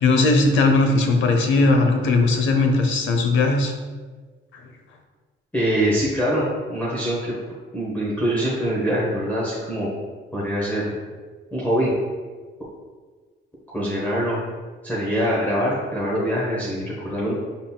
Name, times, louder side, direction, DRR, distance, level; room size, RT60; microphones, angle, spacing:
voice 1, 0.0-3.7, left 3 dB, 75° left, 4 dB, 0.7 m, -18 dB
voice 2, 5.5-7.3 7.7-9.9 10.3-10.9 11.5-11.9 13.7-14.4 14.8-17.3, equal, 10° left, -7 dB, 0.8 m, -24 dB
5.5 x 3.7 x 2.2 m, 1.4 s
cardioid pair, 150°, 20 cm